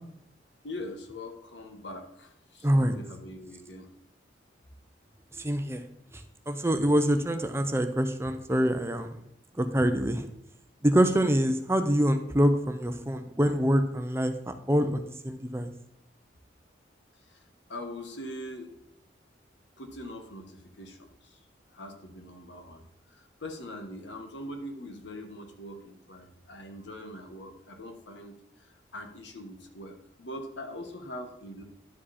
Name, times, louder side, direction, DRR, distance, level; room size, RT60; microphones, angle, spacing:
voice 1, 0.6-3.9 17.3-17.4 17.7-18.7 19.8-21.4 21.7-22.8 23.1-31.6, left 1 dB, 80° left, 5 dB, 1.3 m, -42 dB
voice 2, 2.6-2.9 5.3-5.8 6.1-9.2 9.6-10.3 10.8-15.7, equal, 15° right, 8 dB, 0.6 m, -25 dB
11.0 x 5.1 x 4.2 m, 0.79 s
head